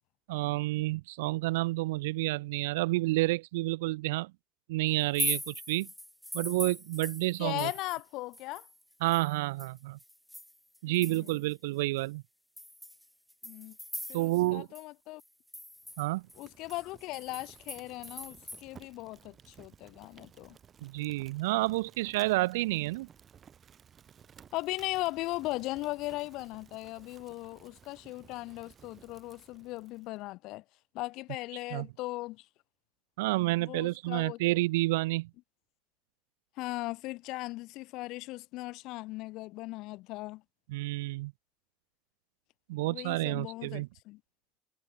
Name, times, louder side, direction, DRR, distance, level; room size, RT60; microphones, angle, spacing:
voice 1, 0.3-4.3 4.7-5.9 6.3-7.7 9.0-10.0 10.8-12.2 14.1-14.7 16.0-16.3 20.8-23.1 31.7-31.9 33.2-35.3 40.7-41.3 42.7-43.9, right 20 dB, 80° right, 1.2 m, -30 dB
sound 1, 5.0-8.1 8.3-11.5 12.0-12.1 12.6-14.5 14.8-14.9 15.2-18.6, equal, ahead, 1.0 m, -40 dB
voice 2, 7.4-8.7 10.8-11.3 13.4-13.8 14.1-15.2 16.4-20.6 24.5-30.6 30.9-32.5 33.6-34.4 36.6-40.4 42.9-44.2, left 20 dB, 70° left, 2.1 m, -38 dB
Fire, 15.8-30.2, right 7 dB, 45° right, 4.8 m, -57 dB
hypercardioid pair, 55°, 0 cm